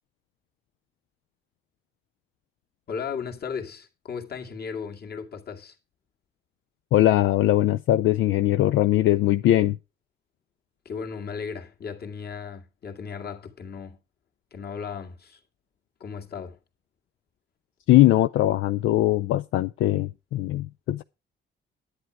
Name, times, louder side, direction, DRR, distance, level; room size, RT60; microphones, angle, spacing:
voice 1, 2.9-5.8 10.9-14.0 14.5-15.4 16.0-16.6, left 6 dB, 55° left, 2.3 m, -36 dB
voice 2, 6.9-9.8 17.9-21.0, left 14 dB, 80° left, 0.5 m, -21 dB
10.5 x 9.4 x 4.7 m
cardioid pair, 90°, 20 cm